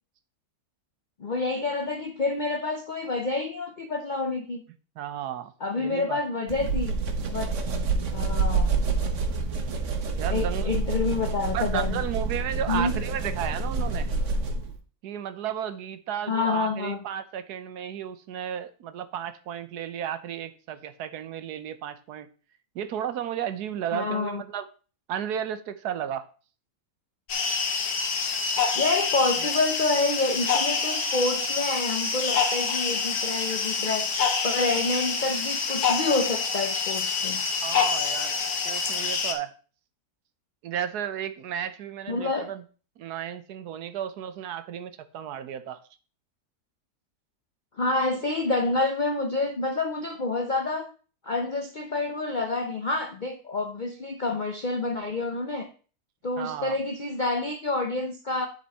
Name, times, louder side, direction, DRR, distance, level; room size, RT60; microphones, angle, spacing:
voice 1, 1.2-4.6 5.6-6.9 7.3-7.6 8.1-8.7 10.3-12.0 12.7-12.9 16.3-17.0 23.9-24.4 28.7-34.1 34.4-37.4 42.1-42.5 47.8-50.9 51.2-55.7 56.2-58.5, left 3 dB, 55° left, 5 dB, 0.5 m, -28 dB
voice 2, 5.0-5.5 5.8-6.2 10.2-10.8 11.5-14.1 15.0-22.3 22.7-24.7 25.1-26.3 37.6-39.5 40.6-42.6 43.0-45.8 56.4-56.8, right 9 dB, 75° right, 11 dB, 1.2 m, -33 dB
sound 1, 6.5-14.8, right 4 dB, 50° right, 1.2 m, -27 dB
sound 2, 27.3-39.3, left 5 dB, 85° left, 1.7 m, -27 dB
10.0 x 4.5 x 4.1 m, 0.38 s
omnidirectional pair, 1.8 m